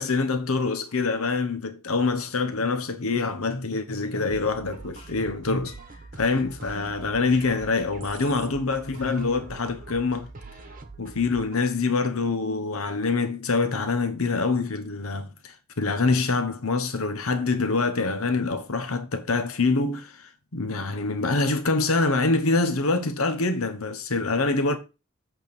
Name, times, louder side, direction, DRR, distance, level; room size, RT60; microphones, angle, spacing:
voice 1, 0.0-5.7 6.2-10.3 11.0-24.8, left 3 dB, 80° left, 1.0 m, -25 dB
sound 1, 4.3-11.7, right 3 dB, 40° right, 1.2 m, -43 dB
8.2 x 3.8 x 6.8 m
head